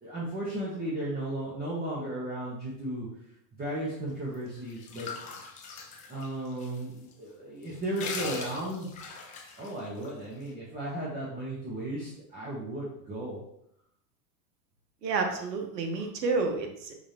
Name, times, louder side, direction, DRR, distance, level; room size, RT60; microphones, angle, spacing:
voice 1, 0.0-3.1 3.6-5.1 6.1-8.9 9.6-13.4, right 1 dB, 20° right, -6 dB, 1.3 m, -35 dB
sound 1, 4.3-6.8 7.1-7.2 7.6-10.1, left 4 dB, 20° left, 0.3 m, -40 dB
voice 2, 15.0-16.9, right 4 dB, 85° right, 4 dB, 1.1 m, -30 dB
5.0 x 3.4 x 2.9 m, 0.74 s
hypercardioid pair, 110°, 49 cm